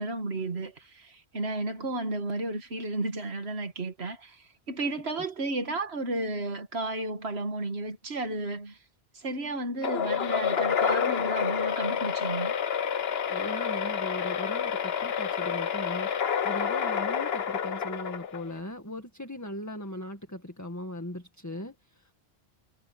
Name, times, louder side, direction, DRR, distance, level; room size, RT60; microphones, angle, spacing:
voice 1, 0.0-8.8 9.1-12.5, right 2 dB, 75° right, 2.1 m, -33 dB
sound 1, 9.8-18.6, left 8 dB, 70° left, 1.2 m, -29 dB
voice 2, 13.2-22.1, left 1 dB, 15° left, 1.9 m, -39 dB
omnidirectional pair, 1.1 m